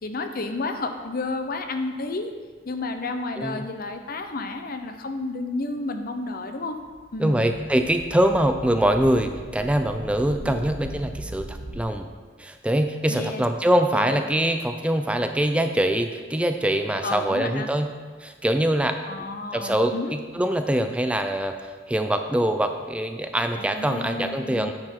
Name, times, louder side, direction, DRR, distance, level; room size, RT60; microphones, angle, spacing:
voice 1, 0.0-2.3 2.7-6.8 7.1-7.4 10.4-10.6 13.1-13.4 13.9-14.2 17.0-17.7 19.1-20.1 23.6-24.7, left 3 dB, 55° left, 7 dB, 0.7 m, -31 dB
sound 1, 6.8-11.8, right 1 dB, 80° right, 1.1 m, -39 dB
voice 2, 7.2-12.1 12.4-17.9 18.2-19.0 19.5-24.7, right 1 dB, 5° right, 6 dB, 0.4 m, -23 dB
9.5 x 6.7 x 4.5 m, 1.5 s
head